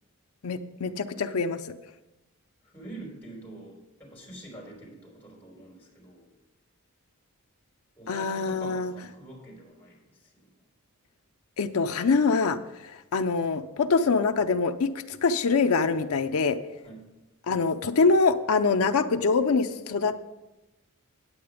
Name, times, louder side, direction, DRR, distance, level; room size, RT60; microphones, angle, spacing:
voice 1, 0.4-1.8 8.1-8.9 11.6-12.6 12.8-16.6 17.5-20.3, left 4 dB, 70° left, 7 dB, 0.5 m, -24 dB
voice 2, 2.6-6.3 8.0-10.3 16.8-17.0, right 1 dB, 10° left, -3 dB, 3.6 m, -45 dB
8.7 x 8.6 x 5.0 m, 1.0 s
head